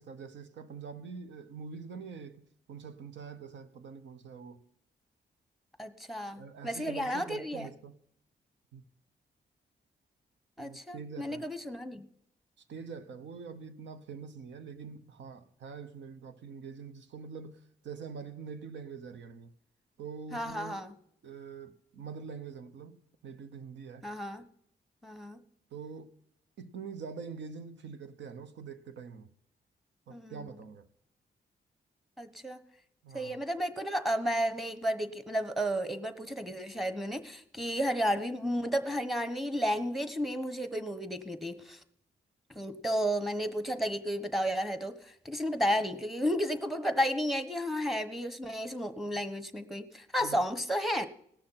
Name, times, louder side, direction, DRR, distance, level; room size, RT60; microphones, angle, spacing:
voice 1, 0.0-4.6 6.4-7.9 8.7-8.8 10.6-11.4 12.7-19.5 20.0-20.8 21.2-24.0 25.7-26.1 26.6-29.3 30.1-30.9 33.0-33.4 50.2-50.4, right 5 dB, 90° right, 1.0 m, -45 dB
voice 2, 5.8-7.7 10.6-12.0 20.3-20.9 24.0-24.4 25.0-25.4 30.1-30.5 32.2-32.6 33.1-41.8 42.5-45.0 45.2-51.1, equal, ahead, 1.2 m, -32 dB
18.0 x 6.6 x 5.7 m
cardioid pair, 75°, 18 cm